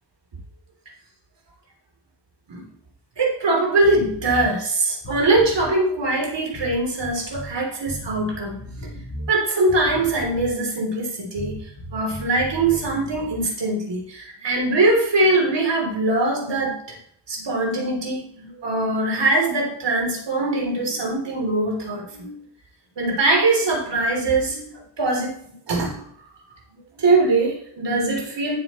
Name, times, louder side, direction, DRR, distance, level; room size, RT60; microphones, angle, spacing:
voice 1, 3.2-8.9 9.3-11.6 11.9-17.0 17.3-22.3 23.0-26.1 27.0-28.5, right 2 dB, 75° right, -1 dB, 3.5 m, -22 dB
sound 1, 3.8-4.5 5.0-5.7 6.5-7.5 7.9-9.3 9.7-10.6 11.4-13.4, equal, 80° left, 2.9 m, -36 dB
12.5 x 8.8 x 3.2 m, 0.66 s
wide cardioid pair, 95°, 42 cm